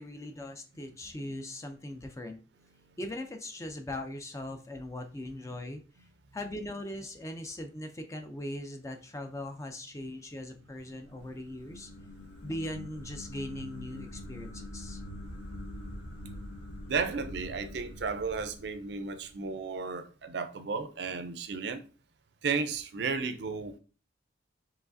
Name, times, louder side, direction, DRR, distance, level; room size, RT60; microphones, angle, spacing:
voice 1, 0.0-2.4 3.0-6.1 6.3-11.9 12.4-15.0, left 1 dB, 15° left, 0.4 m, -40 dB
sound 1, 10.4-19.6, left 1 dB, 75° left, 1.2 m, -45 dB
voice 2, 16.9-21.8 22.4-23.8, right 5 dB, 60° right, 0.4 m, -33 dB
4.7 x 3.1 x 2.6 m
head